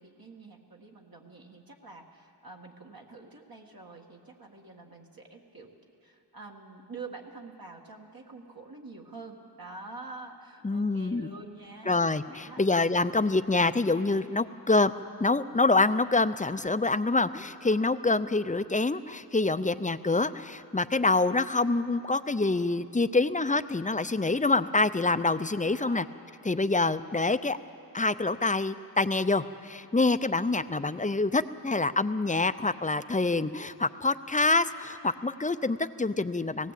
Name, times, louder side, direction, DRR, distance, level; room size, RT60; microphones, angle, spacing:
voice 1, 0.0-5.7 6.0-12.0 12.3-12.6 25.6-26.1, right 3 dB, 60° right, 0 dB, 1.9 m, -46 dB
voice 2, 10.6-11.3 11.9-14.9 15.2-26.0 26.5-27.6 27.9-36.7, left 3 dB, 20° left, 12 dB, 0.6 m, -26 dB
18.5 x 17.0 x 8.3 m, 2.6 s
wide cardioid pair, 45°, 41 cm